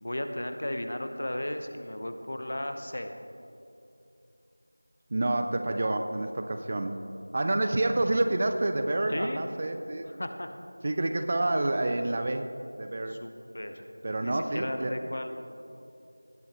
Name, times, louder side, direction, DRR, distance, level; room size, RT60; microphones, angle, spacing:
voice 1, 0.0-3.1 9.1-9.4 10.1-10.5 13.1-13.8 14.2-15.3, left 1 dB, 55° left, 7 dB, 0.8 m, -35 dB
voice 2, 5.1-7.0 7.3-10.2 10.8-12.5 12.8-13.2 14.0-14.9, right 2 dB, 25° right, 7 dB, 0.3 m, -28 dB
18.0 x 8.5 x 2.9 m, 2.7 s
figure-of-eight pair, 175°, 0 cm